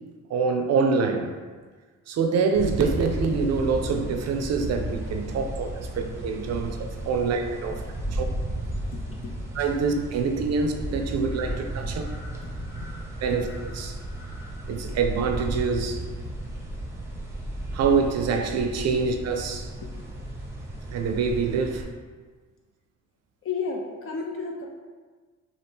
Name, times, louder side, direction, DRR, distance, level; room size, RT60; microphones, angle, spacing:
voice 1, 0.3-1.3 2.1-7.8 8.1-8.2 9.6-12.0 13.2-14.0 14.7-16.0 17.7-19.7 20.9-21.9, right 5 dB, 60° right, 4 dB, 0.5 m, -25 dB
sound 1, 2.5-21.8, right 1 dB, 10° right, 0.6 m, -34 dB
voice 2, 8.6-9.4 11.8-12.0 12.4-13.0 13.3-13.4 19.8-19.9 23.4-24.7, left 4 dB, 45° left, 0 dB, 0.4 m, -34 dB
2.8 x 2.5 x 3.4 m, 1.4 s
cardioid pair, 90°, 30 cm